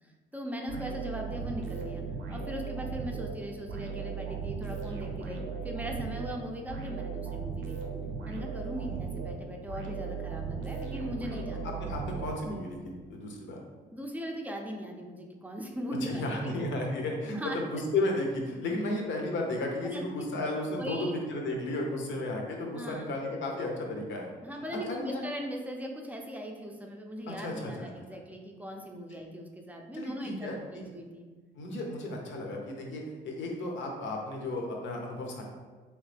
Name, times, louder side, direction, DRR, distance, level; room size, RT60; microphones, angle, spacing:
voice 1, 0.3-2.0 2.3-5.4 5.6-7.8 8.2-11.7 13.9-16.5 17.3-17.6 19.8-20.2 20.8-21.1 22.7-23.1 24.4-31.2, equal, 10° right, 1 dB, 0.5 m, -39 dB
sound 1, 0.7-12.9, right 5 dB, 85° right, 0.6 m, -37 dB
voice 2, 8.8-9.1 11.6-13.6 16.0-24.3 24.7-25.2 27.3-28.0 29.9-30.6 31.6-35.4, left 2 dB, 70° left, 1 dB, 0.8 m, -34 dB
3.2 x 3.1 x 3.3 m, 1.4 s
cardioid pair, 90°, 20 cm